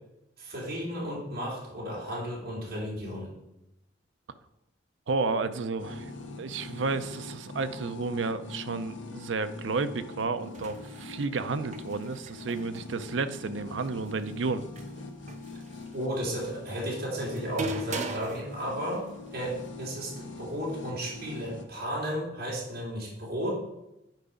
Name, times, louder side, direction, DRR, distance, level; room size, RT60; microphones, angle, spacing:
voice 1, 0.4-3.3 15.9-23.6, equal, 55° right, -5 dB, 3.0 m, -34 dB
voice 2, 5.1-6.1 6.4-14.6, right 4 dB, 75° right, 11 dB, 0.6 m, -31 dB
sound 1, 5.8-21.7, left 3 dB, 80° left, 1.1 m, -43 dB
sound 2, 10.4-19.7, right 2 dB, 40° right, 0.7 m, -41 dB
9.3 x 4.9 x 5.1 m, 0.90 s
head